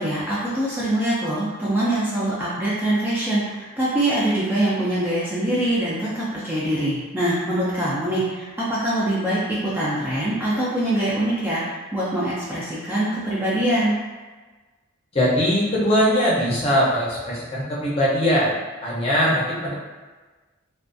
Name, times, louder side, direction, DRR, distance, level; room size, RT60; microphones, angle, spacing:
voice 1, 0.0-11.6 11.9-14.0, right 1 dB, 10° right, -8 dB, 0.3 m, -23 dB
voice 2, 15.1-18.5 18.8-19.7, equal, 30° left, -7 dB, 0.6 m, -21 dB
2.4 x 2.2 x 2.4 m, 1.3 s
head